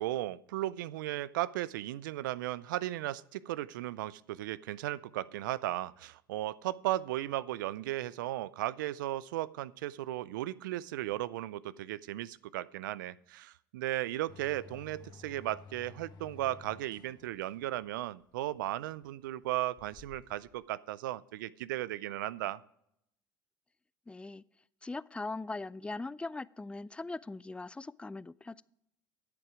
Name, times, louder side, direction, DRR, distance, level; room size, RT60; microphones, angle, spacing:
voice 1, 0.0-22.6, right 15 dB, 80° right, 20 dB, 0.4 m, -36 dB
sound 1, 14.3-20.5, left 5 dB, 40° left, 1.2 m, -55 dB
voice 2, 24.1-24.4 24.8-28.6, left 3 dB, 10° left, 20 dB, 0.4 m, -40 dB
10.5 x 8.3 x 4.8 m, 0.75 s
hypercardioid pair, 75°, 11 cm